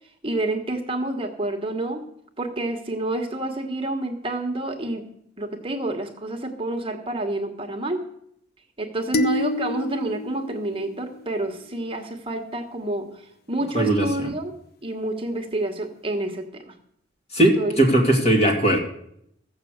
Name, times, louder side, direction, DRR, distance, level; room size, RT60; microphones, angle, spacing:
voice 1, 0.2-2.0 2.4-5.1 5.4-8.1 8.8-13.2 13.5-14.5 14.8-16.7 17.6-17.8, right 2 dB, 30° right, 4 dB, 1.3 m, -28 dB
sound 1, 9.1-11.6, left 2 dB, 55° left, 0.7 m, -29 dB
voice 2, 13.7-14.3 17.3-18.8, right 1 dB, 35° left, 1 dB, 2.6 m, -19 dB
14.5 x 6.8 x 8.0 m, 0.71 s
head